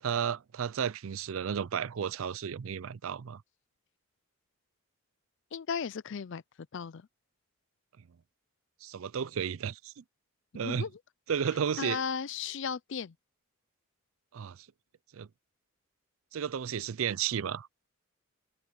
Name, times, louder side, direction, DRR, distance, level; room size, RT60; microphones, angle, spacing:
voice 1, 0.0-3.4 8.8-10.0 10.5-10.9 11.3-12.0 14.3-14.7 15.1-15.3 16.3-17.7, right 7 dB, 70° right, 0.4 m, -33 dB
voice 2, 5.5-6.4 6.7-7.1 10.6-10.9 11.8-13.1, left 6 dB, 55° left, 0.4 m, -35 dB
head